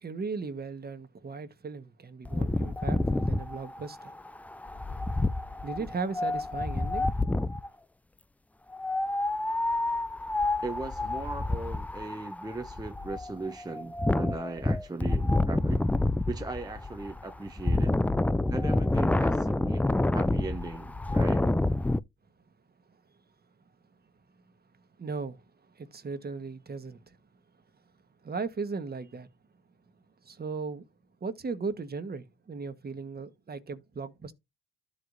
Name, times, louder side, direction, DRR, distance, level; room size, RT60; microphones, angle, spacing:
voice 1, 0.0-4.1 5.6-7.1 25.0-27.2 28.2-29.3 30.2-30.8 31.2-34.3, right 4 dB, 30° right, 1.3 m, -37 dB
Wind, 2.3-7.7 8.7-22.0, left 2 dB, 5° left, 0.3 m, -28 dB
voice 2, 10.6-15.9 16.3-18.0 18.5-21.5, right 3 dB, 15° right, 0.8 m, -38 dB
13.0 x 4.8 x 2.6 m
cardioid pair, 90°, 30 cm